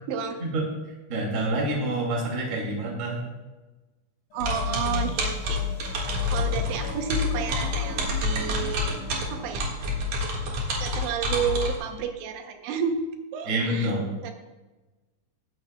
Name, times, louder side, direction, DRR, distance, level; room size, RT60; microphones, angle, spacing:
voice 1, 0.1-0.4 4.3-9.0 9.3-9.6 10.8-13.0 13.3-13.9 14.2-14.3, right 7 dB, 80° right, 5 dB, 3.0 m, -31 dB
voice 2, 1.1-3.2 13.4-14.0, right 1 dB, 25° right, -2 dB, 1.6 m, -27 dB
sound 1, 4.3-10.6, left 1 dB, 70° left, 3.7 m, -42 dB
sound 2, 4.4-11.8, left 2 dB, 55° right, 2.1 m, -28 dB
20.0 x 9.0 x 2.2 m, 1.2 s
omnidirectional pair, 5.2 m